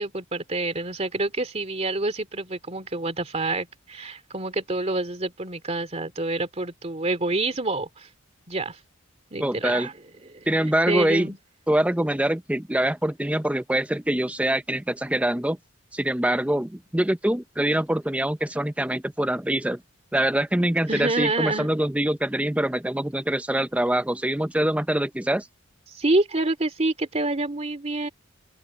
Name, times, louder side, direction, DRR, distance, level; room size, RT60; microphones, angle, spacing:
voice 1, 0.0-8.1 8.5-8.8 9.3-10.0 10.3-10.5 10.9-11.4 20.9-21.7 25.9-28.1, right 2 dB, 30° right, 2.7 m, -27 dB
voice 2, 9.4-9.9 10.5-11.3 11.7-15.6 15.9-19.8 20.1-25.5, right 1 dB, 5° right, 0.7 m, -24 dB
open air
head